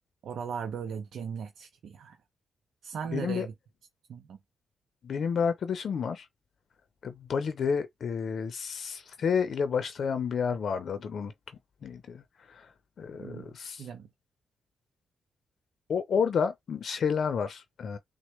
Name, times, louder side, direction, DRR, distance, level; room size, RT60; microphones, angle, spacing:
voice 1, 0.2-2.2 2.8-3.5 4.1-4.4 13.2-13.5 13.8-14.1, right 7 dB, 70° right, 0.6 m, -37 dB
voice 2, 3.1-3.5 5.0-6.3 7.0-11.3 11.8-12.7 13.0-13.9 15.9-18.0, left 6 dB, 60° left, 0.6 m, -30 dB
6.1 x 2.1 x 3.2 m
cardioid pair, 100°, 0 cm